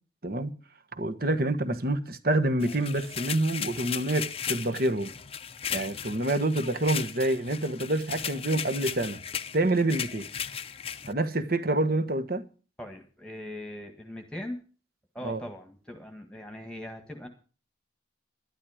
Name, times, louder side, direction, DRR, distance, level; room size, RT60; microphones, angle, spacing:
voice 1, 1.0-5.1 5.7-9.2 9.5-10.3 11.1-12.4 15.2-15.4, right 1 dB, 50° right, 1.3 m, -27 dB
sound 1, 2.6-11.1, left 8 dB, 30° left, 0.6 m, -36 dB
voice 2, 12.8-14.6 15.1-17.3, left 1 dB, 5° left, 1.6 m, -40 dB
12.0 x 12.0 x 4.9 m
head